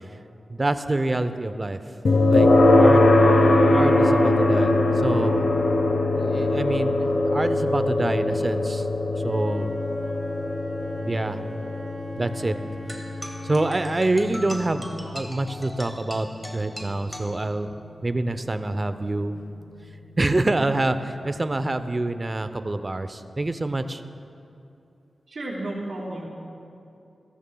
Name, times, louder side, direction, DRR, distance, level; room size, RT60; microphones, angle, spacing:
voice 1, 0.5-1.8 2.3-3.0 3.7-5.4 6.1-8.9 9.2-9.7 11.0-11.4 12.2-12.6 13.4-17.8 18.0-19.4 20.2-24.0, right 2 dB, 35° right, 10 dB, 0.6 m, -26 dB
sound 1, 2.0-17.0, left 2 dB, 70° left, 1.0 m, -21 dB
Wind instrument woodwind instrument, 9.1-14.0, right 1 dB, 15° right, 2.7 m, -41 dB
sound 2, 12.9-17.9, equal, 5° left, 1.4 m, -40 dB
voice 2, 25.3-26.3, right 1 dB, 60° right, -8 dB, 3.1 m, -32 dB
17.0 x 14.0 x 2.3 m, 2.7 s
cardioid pair, 50°, 0 cm